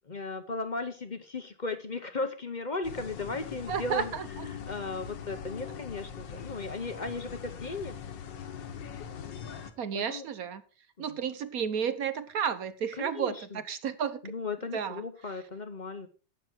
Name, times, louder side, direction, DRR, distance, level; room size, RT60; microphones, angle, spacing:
voice 1, 0.1-4.1 4.5-7.9 9.9-10.3 11.0-11.1 13.0-13.6 14.2-16.1, left 3 dB, 40° left, 9 dB, 0.6 m, -36 dB
sound 1, 2.8-9.7, left 7 dB, 70° left, 1.9 m, -42 dB
voice 2, 3.7-4.5 9.8-10.6 11.0-14.2 14.7-15.0, right 7 dB, 60° right, 13 dB, 1.1 m, -32 dB
11.5 x 8.8 x 4.5 m, 0.36 s
omnidirectional pair, 2.1 m